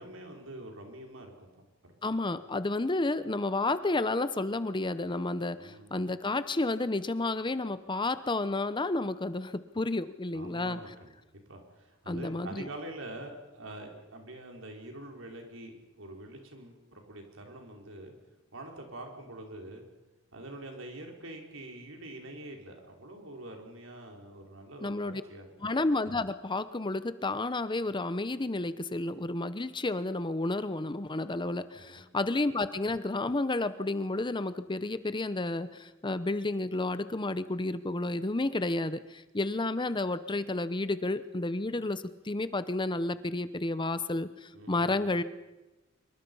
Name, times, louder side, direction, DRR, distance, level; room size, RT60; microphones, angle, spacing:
voice 1, 0.0-1.9 5.6-6.1 10.3-11.1 11.5-18.1 18.5-19.8 20.3-25.5 31.7-32.0 44.5-45.1, right 1 dB, 80° right, 2 dB, 4.9 m, -45 dB
voice 2, 2.0-10.8 12.1-12.7 24.8-25.2 25.6-45.2, left 2 dB, 25° left, 13 dB, 0.8 m, -31 dB
25.5 x 23.5 x 5.6 m, 1.1 s
head